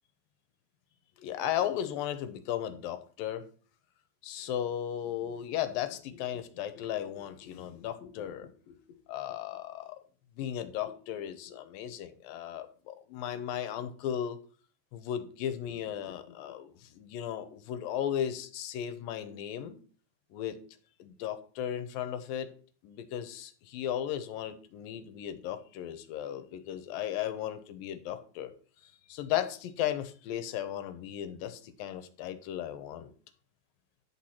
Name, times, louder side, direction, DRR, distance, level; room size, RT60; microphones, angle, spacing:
voice 1, 1.2-3.5 4.2-8.8 9.1-10.0 10.4-14.4 14.9-19.8 20.3-20.6 21.0-22.5 22.8-28.5 29.1-33.1, left 10 dB, 75° left, 11 dB, 2.5 m, -36 dB
11.0 x 8.0 x 4.3 m, 0.42 s
omnidirectional pair, 4.2 m